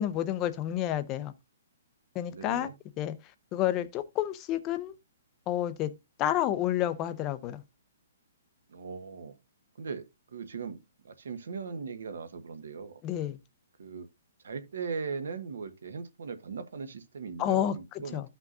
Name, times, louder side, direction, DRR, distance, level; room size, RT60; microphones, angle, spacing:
voice 1, 0.0-1.3 2.1-2.7 3.0-3.2 3.5-5.0 5.5-5.9 6.2-7.6 13.0-13.4 17.4-17.8 18.1-18.2, left 12 dB, 15° left, 0.6 m, -29 dB
voice 2, 2.3-2.7 8.7-9.4 9.8-13.0 13.8-14.1 14.4-18.3, right 5 dB, 75° right, 1.4 m, -39 dB
14.0 x 5.9 x 2.6 m
hypercardioid pair, 175°, 0 cm